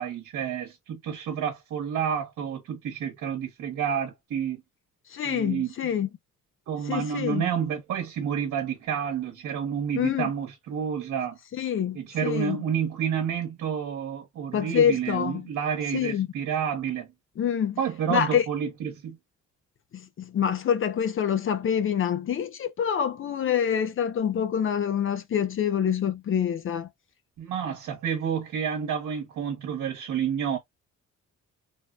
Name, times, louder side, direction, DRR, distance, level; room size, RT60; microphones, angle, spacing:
voice 1, 0.0-4.6 5.2-5.7 6.7-11.4 11.9-17.1 17.8-19.2 27.4-30.6, right 8 dB, 75° right, 1.0 m, -29 dB
voice 2, 5.1-6.1 6.9-7.4 10.0-10.3 11.5-12.6 14.5-15.5 15.9-16.3 17.4-17.8 18.1-18.4 19.9-26.9, left 8 dB, 45° left, 0.5 m, -26 dB
3.5 x 2.1 x 2.3 m
cardioid pair, 90°, 30 cm